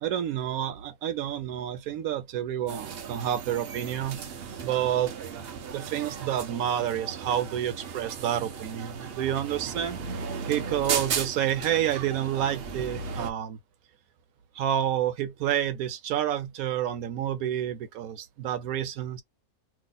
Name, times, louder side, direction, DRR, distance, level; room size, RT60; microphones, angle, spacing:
voice 1, 0.0-4.2 4.6-5.1 5.7-10.0 10.5-13.6 14.5-19.2, right 11 dB, 75° right, 1.1 m, -29 dB
sound 1, 2.7-13.3, right 6 dB, 60° right, 0.6 m, -36 dB
2.8 x 2.1 x 3.8 m
omnidirectional pair, 1.5 m